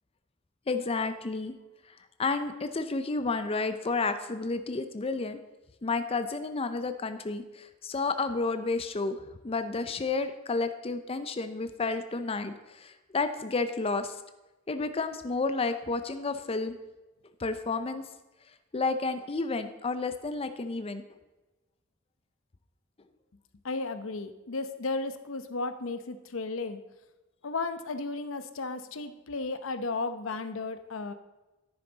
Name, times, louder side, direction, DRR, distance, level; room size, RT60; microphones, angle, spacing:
voice 1, 0.7-1.5 1.9-5.4 5.8-14.2 14.7-16.8 17.4-18.0 18.7-21.0, left 3 dB, 30° left, 9 dB, 0.5 m, -31 dB
voice 2, 23.6-26.8 27.4-31.1, left 3 dB, 75° left, 10 dB, 0.8 m, -34 dB
10.5 x 9.9 x 4.0 m, 1.1 s
head